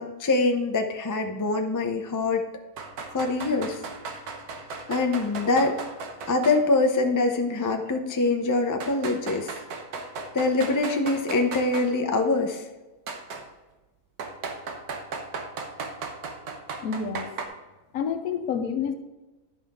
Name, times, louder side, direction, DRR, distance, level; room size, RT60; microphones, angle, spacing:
voice 1, 0.0-2.4 3.1-3.8 4.9-5.8 6.3-9.5 10.3-12.7, left 3 dB, 30° left, 4 dB, 0.3 m, -24 dB
sound 1, 2.8-6.6 6.9-7.0 7.9-8.0 8.8-11.9 13.1-13.4 14.2-17.5, right 4 dB, 80° right, 1.4 m, -36 dB
voice 2, 16.8-17.3 17.9-18.9, left 6 dB, 70° left, 8 dB, 1.2 m, -28 dB
11.0 x 5.6 x 3.6 m, 1.1 s
omnidirectional pair, 1.6 m